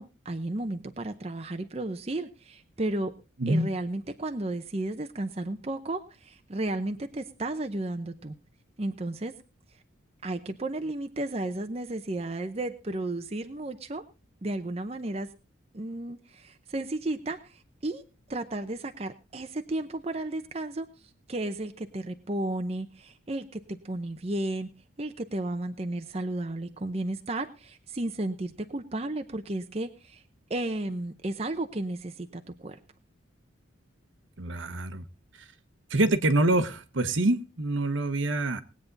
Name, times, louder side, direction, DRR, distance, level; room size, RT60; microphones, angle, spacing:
voice 1, 0.0-3.1 3.5-8.3 8.8-9.3 10.2-14.0 14.4-15.3 15.7-18.0 18.3-20.9 21.3-24.7 25.0-30.2 30.5-32.8, right 2 dB, 30° right, 7 dB, 0.7 m, -33 dB
voice 2, 34.4-35.0 35.9-38.6, right 2 dB, 70° right, 10 dB, 1.1 m, -25 dB
20.0 x 8.5 x 4.0 m, 0.32 s
head